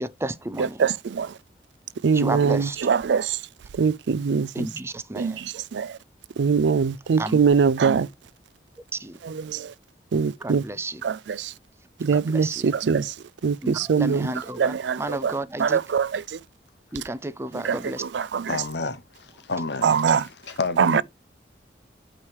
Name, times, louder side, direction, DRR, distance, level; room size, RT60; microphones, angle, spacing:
voice 1, 0.0-0.8 2.1-2.8 4.5-5.4 7.2-7.4 9.0-9.1 10.4-11.0 12.3-12.6 13.6-14.7 15.0-15.8 16.9-18.0, right 2 dB, 15° right, 0.4 m, -31 dB
voice 2, 0.6-1.4 2.0-3.4 3.7-4.7 5.2-6.0 6.4-8.1 9.2-9.7 10.1-10.6 11.0-11.5 12.0-16.4 17.5-18.6 19.8-20.3 20.8-21.0, right 6 dB, 85° right, 0.4 m, -23 dB
voice 3, 18.5-20.0 20.5-21.0, left 3 dB, 75° left, 0.9 m, -30 dB
8.7 x 3.1 x 4.7 m
head